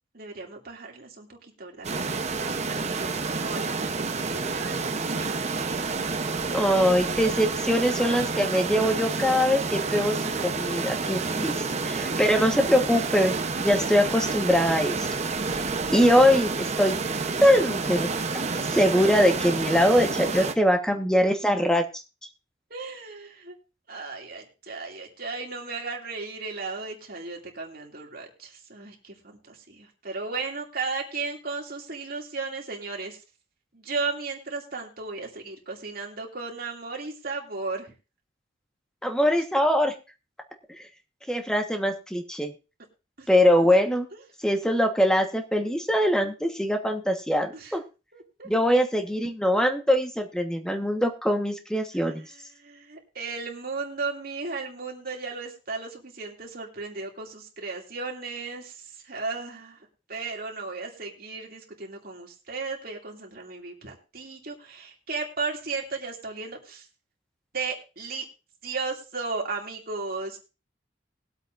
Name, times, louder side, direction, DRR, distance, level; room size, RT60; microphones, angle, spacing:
voice 1, 0.1-4.9 5.2-5.6 22.7-23.6 23.9-33.2 33.7-37.9 43.2-43.3 47.5-47.8 48.1-48.5 51.9-59.8 60.1-66.9 67.5-68.2 68.6-70.4, right 4 dB, 55° right, 0 dB, 2.5 m, -35 dB
sound 1, 1.8-20.5, right 4 dB, 40° right, 0.8 m, -29 dB
voice 2, 6.5-11.5 11.8-13.3 13.6-15.1 15.5-17.0 17.4-18.1 18.7-21.8 39.0-39.9 40.7-40.8 41.3-42.5 43.3-44.1 44.4-47.8 48.4-52.2, equal, 5° left, 5 dB, 1.2 m, -22 dB
21.0 x 8.1 x 2.6 m, 0.31 s
head